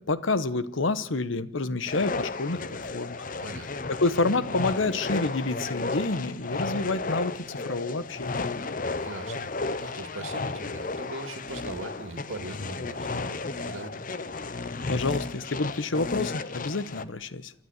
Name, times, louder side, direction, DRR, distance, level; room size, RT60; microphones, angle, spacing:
voice 1, 0.1-2.6 2.9-3.2 3.9-8.5 14.9-17.5, left 3 dB, 75° left, 15 dB, 1.0 m, -28 dB
sound 1, 1.9-17.1, left 3 dB, 40° left, 0.8 m, -33 dB
voice 2, 3.4-3.7 8.9-9.5 9.8-14.0, right 2 dB, 85° right, 9 dB, 2.1 m, -40 dB
28.5 x 12.0 x 8.0 m, 0.81 s
head